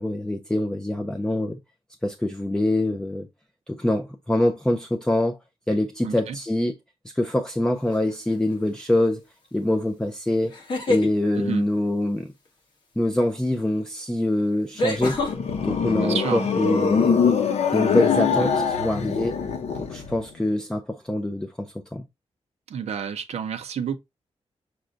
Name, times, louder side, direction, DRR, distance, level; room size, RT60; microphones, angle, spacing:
voice 1, 0.0-1.6 2.0-3.3 3.7-5.4 5.7-6.8 7.1-9.2 9.5-10.6 10.9-12.3 13.0-15.2 15.6-17.1 17.7-19.4 19.8-22.0, left 1 dB, 5° left, 0.4 m, -24 dB
voice 2, 6.0-6.4 11.4-11.6 16.0-16.5 22.7-24.0, right 7 dB, 70° right, 0.6 m, -30 dB
sound 1, 7.9-8.3 10.5-11.1 13.4-13.5 14.8-15.3, left 2 dB, 40° left, 1.4 m, -25 dB
sound 2, 14.9-20.2, left 6 dB, 70° left, 0.8 m, -23 dB
6.1 x 2.2 x 3.8 m
wide cardioid pair, 180°, 11 cm